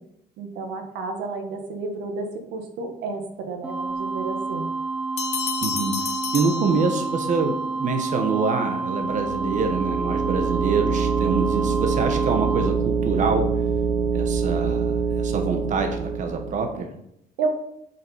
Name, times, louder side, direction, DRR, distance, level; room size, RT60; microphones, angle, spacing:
voice 1, 0.4-4.7 17.4-17.5, right 4 dB, 85° right, 4 dB, 1.6 m, -31 dB
sound 1, 3.6-12.7, right 3 dB, 5° right, 0.7 m, -29 dB
sound 2, 5.2-7.4, left 7 dB, 40° left, 0.9 m, -31 dB
voice 2, 5.6-13.5 14.1-16.9, right 4 dB, 45° right, 5 dB, 1.2 m, -26 dB
sound 3, 9.0-16.7, right 6 dB, 65° right, 1.6 m, -25 dB
7.4 x 5.7 x 5.5 m, 0.77 s
cardioid pair, 110°, 17 cm